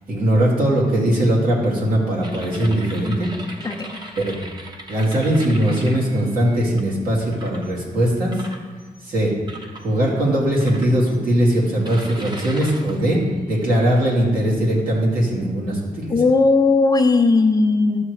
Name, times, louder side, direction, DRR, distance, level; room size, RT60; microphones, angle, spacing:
voice 1, 0.1-3.3 4.2-4.4 4.9-8.4 9.0-9.3 9.8-13.2 13.5-16.2, right 1 dB, 75° right, -5 dB, 2.2 m, -20 dB
sound 1, 2.2-6.8 7.3-7.7 8.3-9.0 9.5-9.9 10.6-11.3 11.8-14.2, right 1 dB, 30° right, 0.9 m, -39 dB
voice 2, 3.6-4.0 16.1-18.0, left 3 dB, 25° left, 5 dB, 0.5 m, -17 dB
11.5 x 6.6 x 3.1 m, 1.4 s
wide cardioid pair, 145°, 15 cm